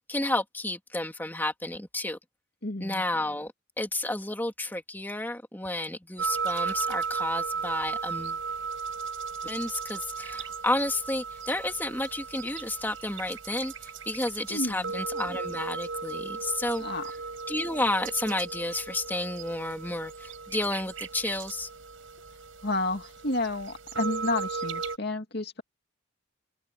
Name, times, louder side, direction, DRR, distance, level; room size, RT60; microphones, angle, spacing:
voice 1, 0.0-2.2 2.8-3.5 3.8-8.4 9.4-16.8 17.5-21.7, left 1 dB, 10° left, 2.6 m, -31 dB
voice 2, 2.6-3.0 14.5-14.9 16.8-17.1 22.6-25.6, left 2 dB, 55° left, 2.5 m, -31 dB
sound 1, 6.2-25.0, right 5 dB, 85° right, 6.6 m, -36 dB
open air
head